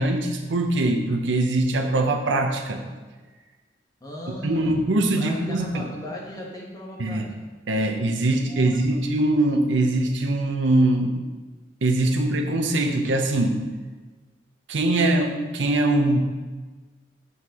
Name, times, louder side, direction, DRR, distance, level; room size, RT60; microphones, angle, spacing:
voice 1, 0.0-2.8 4.4-5.9 7.0-7.3 7.7-11.2 11.8-13.6 14.7-16.2, right 2 dB, 75° right, 4 dB, 0.7 m, -22 dB
voice 2, 4.0-4.8 5.2-7.3 8.4-9.0, left 1 dB, 20° left, -2 dB, 1.2 m, -37 dB
7.9 x 5.5 x 2.9 m, 1.3 s
head